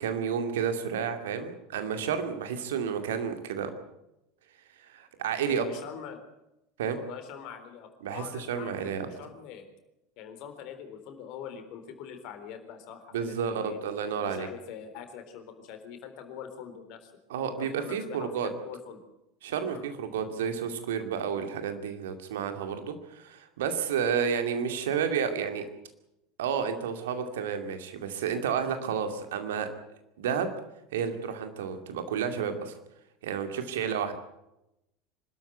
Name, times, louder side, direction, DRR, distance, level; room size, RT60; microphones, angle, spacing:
voice 1, 0.0-3.7 4.8-5.6 6.8-7.0 8.0-9.1 13.1-14.5 17.3-18.5 19.4-25.7 26.4-29.7 30.2-30.5 30.9-32.7 33.2-34.1, right 7 dB, 70° right, 8 dB, 2.4 m, -31 dB
voice 2, 5.5-6.2 6.9-9.7 10.2-13.8 14.2-17.1 17.6-19.1 19.6-19.9 33.8-34.1, left 8 dB, 55° left, 7 dB, 3.9 m, -43 dB
25.5 x 13.0 x 9.3 m, 0.89 s
figure-of-eight pair, 75°, 0 cm